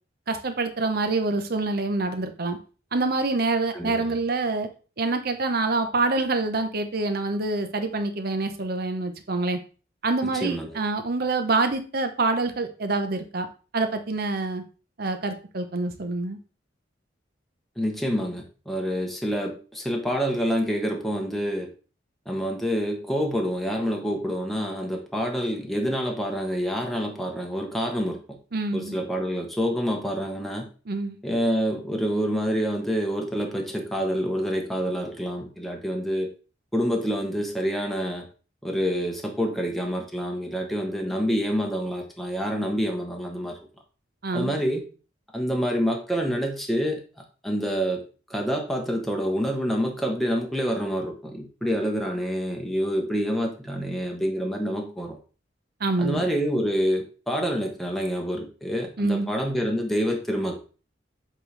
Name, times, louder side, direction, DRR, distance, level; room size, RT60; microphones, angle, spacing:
voice 1, 0.3-2.6 2.9-4.7 5.0-9.6 10.0-13.5 13.7-14.6 15.0-16.4 28.5-28.9 30.9-31.2 44.2-44.5 55.8-56.2 59.0-59.3, right 3 dB, 55° right, 7 dB, 0.8 m, -26 dB
voice 2, 3.7-4.1 10.2-10.8 17.8-21.7 22.3-28.2 28.7-30.7 31.2-36.3 36.7-38.2 38.6-43.6 44.3-44.8 45.3-47.0 47.4-48.0 48.3-55.2 56.0-60.6, equal, ahead, 0 dB, 0.9 m, -27 dB
7.5 x 3.9 x 3.3 m, 0.36 s
head